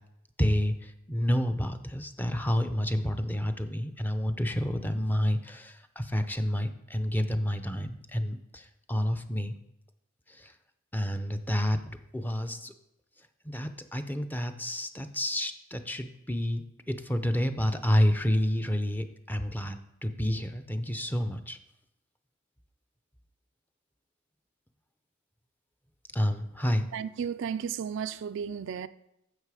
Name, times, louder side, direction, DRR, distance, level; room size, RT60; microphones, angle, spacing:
voice 1, 0.4-9.5 10.3-10.5 10.9-12.7 13.4-21.6 26.1-26.9, equal, 10° left, 0.6 m, -29 dB
voice 2, 26.9-28.9, right 7 dB, 60° right, 0.4 m, -33 dB
10.5 x 7.4 x 4.9 m
head